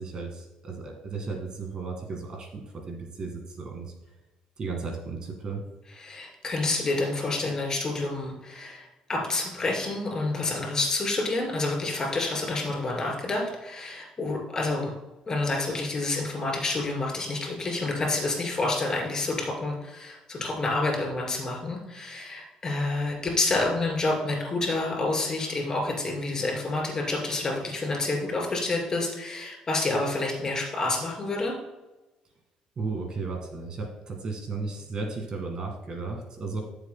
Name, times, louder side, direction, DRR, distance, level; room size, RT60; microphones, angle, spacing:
voice 1, 0.0-3.9 4.6-5.7 32.8-36.6, right 4 dB, 40° right, 2 dB, 1.9 m, -34 dB
voice 2, 6.0-14.9 15.3-31.5, left 2 dB, 30° left, -1 dB, 3.2 m, -28 dB
14.0 x 7.2 x 2.2 m, 1.1 s
cardioid pair, 115°, 2 cm